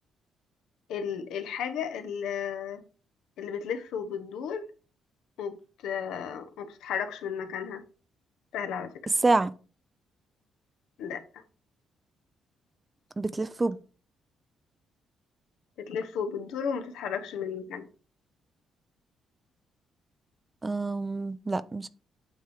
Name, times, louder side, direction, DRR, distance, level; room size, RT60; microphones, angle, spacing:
voice 1, 0.9-2.8 3.4-4.7 5.4-5.6 5.8-7.8 8.5-8.9 11.0-11.2 15.8-17.9, left 7 dB, 85° left, 1.0 m, -33 dB
voice 2, 13.2-13.8 20.6-21.9, right 3 dB, 20° right, 0.4 m, -27 dB
8.9 x 3.5 x 4.7 m
cardioid pair, 110°, 0 cm